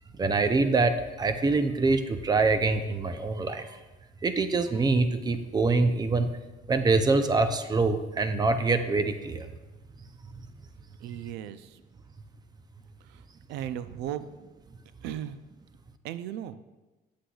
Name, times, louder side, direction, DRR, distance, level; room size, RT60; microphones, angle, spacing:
voice 1, 0.1-3.8 4.2-6.3 6.7-9.5, right 3 dB, 25° right, 9 dB, 0.5 m, -25 dB
voice 2, 11.0-11.8 13.1-13.2 13.5-14.2 15.0-15.4 16.0-16.6, right 11 dB, 85° right, 13 dB, 0.4 m, -36 dB
8.4 x 7.6 x 2.3 m, 1.2 s
cardioid pair, 110°, 17 cm